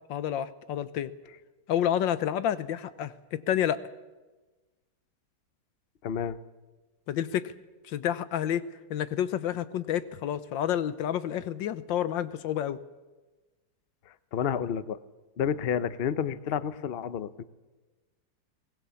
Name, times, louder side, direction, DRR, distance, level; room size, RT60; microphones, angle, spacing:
voice 1, 0.1-1.1 1.7-3.8 7.1-7.5 7.8-8.6 8.9-12.8, left 10 dB, 85° left, 14 dB, 1.6 m, -29 dB
voice 2, 6.0-6.4 14.3-15.0 15.4-17.4, left 8 dB, 55° left, 15 dB, 0.7 m, -30 dB
23.0 x 18.5 x 7.0 m, 1.2 s
omnidirectional pair, 2.0 m